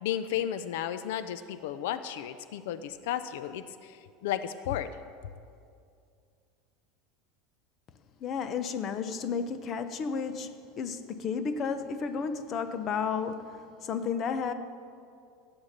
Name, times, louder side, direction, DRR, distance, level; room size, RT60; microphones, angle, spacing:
voice 1, 0.0-4.9, left 10 dB, 75° left, 12 dB, 0.6 m, -33 dB
voice 2, 8.2-14.5, left 6 dB, 30° left, 9 dB, 0.8 m, -32 dB
16.0 x 8.9 x 6.6 m, 2.4 s
supercardioid pair, 160°, 0 cm